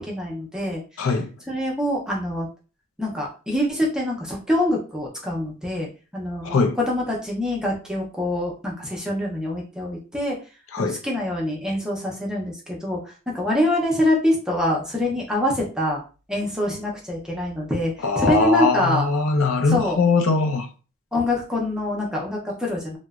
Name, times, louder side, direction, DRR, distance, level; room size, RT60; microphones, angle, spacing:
voice 1, 0.0-0.8 1.5-2.5 3.0-5.9 6.1-10.4 10.8-16.0 16.3-19.1 19.7-20.0 21.1-23.0, left 1 dB, 5° right, 0.5 m, -25 dB
voice 2, 1.0-1.3 6.4-6.8 10.7-11.0 18.0-20.7, left 4 dB, 75° left, 0.5 m, -21 dB
2.9 x 2.0 x 2.3 m
head